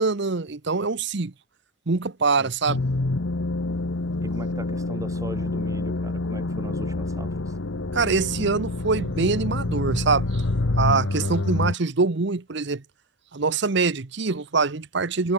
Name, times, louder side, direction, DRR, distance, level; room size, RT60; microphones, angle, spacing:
voice 1, 0.0-1.3 1.9-2.8 7.9-10.4 10.8-12.8 13.3-15.3, right 4 dB, 60° right, 0.9 m, -24 dB
sound 1, 2.7-11.8, left 2 dB, 70° left, 1.1 m, -27 dB
voice 2, 4.2-7.6, equal, 15° right, 5.8 m, -38 dB
head